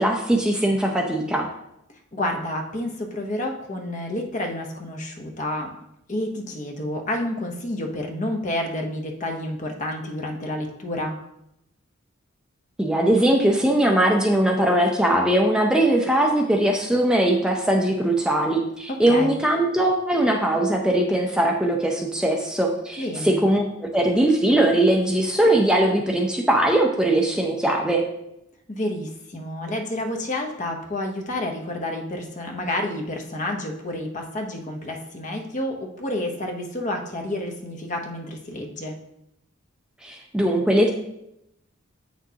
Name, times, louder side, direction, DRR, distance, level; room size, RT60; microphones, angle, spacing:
voice 1, 0.0-1.5 12.8-28.0 40.0-40.9, right 1 dB, 5° right, 0 dB, 0.5 m, -20 dB
voice 2, 2.1-5.7 6.1-11.2 18.9-19.4 23.0-23.4 28.7-39.0, left 1 dB, 35° left, 3 dB, 0.8 m, -29 dB
8.0 x 6.1 x 2.8 m, 0.82 s
head